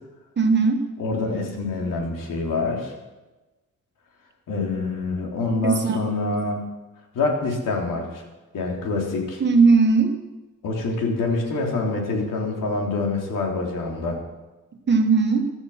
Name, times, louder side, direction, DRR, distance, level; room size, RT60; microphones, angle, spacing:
voice 1, 0.4-0.8 5.6-6.0 9.4-10.1 14.9-15.4, right 4 dB, 35° right, 4 dB, 1.7 m, -18 dB
voice 2, 1.0-2.9 4.5-6.6 7.1-8.2 8.5-9.4 10.6-14.2, left 3 dB, 90° left, 0 dB, 3.7 m, -26 dB
16.0 x 12.5 x 5.8 m, 1.1 s
wide cardioid pair, 170°, 32 cm